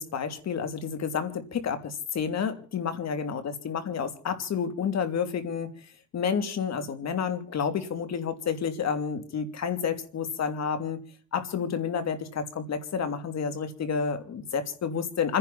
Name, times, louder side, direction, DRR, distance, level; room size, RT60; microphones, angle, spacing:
voice 1, 0.0-5.8 6.1-11.0 11.3-15.4, left 6 dB, 60° left, 8 dB, 3.1 m, -30 dB
28.5 x 10.5 x 4.3 m, 0.44 s
cardioid pair, 90°, 30 cm